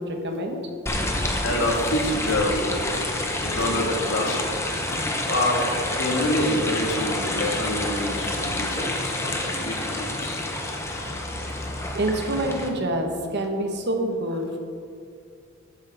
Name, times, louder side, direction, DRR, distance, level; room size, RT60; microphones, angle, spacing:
voice 1, 0.0-0.8 11.9-14.6, right 1 dB, 55° right, 3 dB, 1.5 m, -27 dB
sound 1, 0.9-12.7, left 1 dB, 15° left, 1.1 m, -28 dB
voice 2, 1.0-3.0 3.4-4.5 4.8-5.7 6.0-10.4, left 1 dB, 70° left, 0 dB, 2.0 m, -27 dB
13.0 x 10.5 x 3.6 m, 2.3 s
head